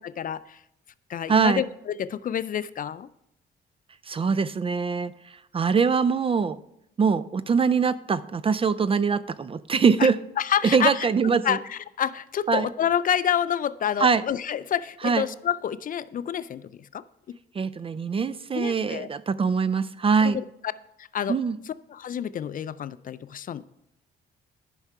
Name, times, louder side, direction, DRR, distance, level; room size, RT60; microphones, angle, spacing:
voice 1, 0.2-0.6 1.1-3.1 10.0-10.1 10.4-11.1 11.4-17.0 18.5-19.1 20.2-20.4 21.0-21.4 21.7-23.6, left 9 dB, 45° left, 16 dB, 0.4 m, -28 dB
voice 2, 1.3-1.6 4.1-5.1 5.5-6.6 7.0-10.2 10.7-11.6 12.5-12.7 14.0-14.2 15.0-15.2 17.6-20.4 21.3-21.6, right 5 dB, 30° right, 16 dB, 0.4 m, -23 dB
11.0 x 5.6 x 4.8 m, 0.80 s
cardioid pair, 90°, 20 cm